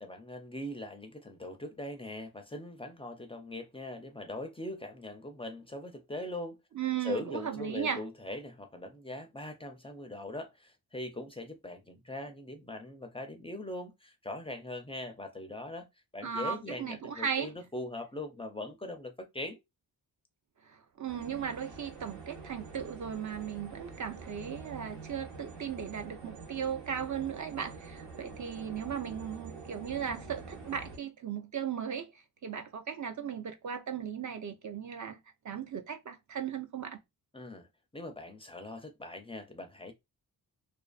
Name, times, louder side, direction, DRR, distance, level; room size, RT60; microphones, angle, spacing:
voice 1, 0.0-6.6 7.0-15.9 16.1-19.6 37.3-37.7 37.9-39.9, left 1 dB, 15° left, 0.4 m, -41 dB
voice 2, 6.7-8.0 16.2-17.5 20.6-32.1 32.4-35.2 35.4-37.0, right 8 dB, 45° right, 0.5 m, -37 dB
sound 1, 21.1-31.0, right 4 dB, 85° right, 1.2 m, -47 dB
2.5 x 2.4 x 2.3 m
wide cardioid pair, 100°, 42 cm